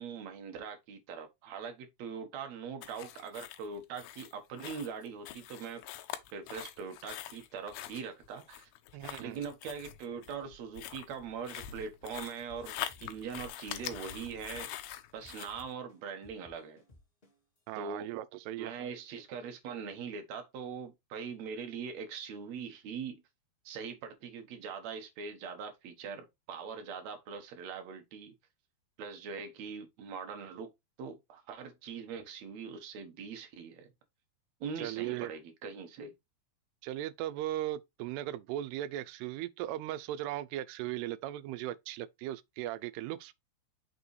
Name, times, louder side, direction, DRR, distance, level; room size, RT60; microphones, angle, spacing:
voice 1, 0.0-5.8 6.3-8.7 9.2-14.7 15.1-16.8 17.7-18.1 18.6-23.2 23.6-28.3 29.0-30.7 31.0-33.9 34.6-36.1, right 6 dB, 70° right, 1.7 m, -42 dB
sound 1, 2.8-15.7, left 12 dB, 80° left, 2.6 m, -44 dB
voice 2, 8.9-9.4 17.7-18.7 34.8-35.3 36.8-43.3, right 13 dB, 85° right, 2.6 m, -38 dB
sound 2, 12.6-14.9 15.2-17.6, left 2 dB, 25° left, 1.4 m, -59 dB
6.1 x 4.9 x 3.2 m
omnidirectional pair, 4.6 m